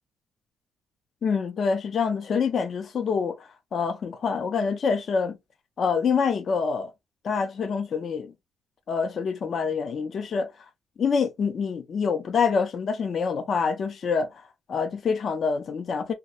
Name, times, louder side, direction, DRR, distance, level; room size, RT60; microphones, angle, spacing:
voice 1, 1.2-5.4 5.8-6.9 7.2-8.3 8.9-10.5 11.0-14.4 14.7-16.1, left 5 dB, 55° left, 0.6 m, -26 dB
2.5 x 2.2 x 2.8 m
cardioid pair, 90°, 0 cm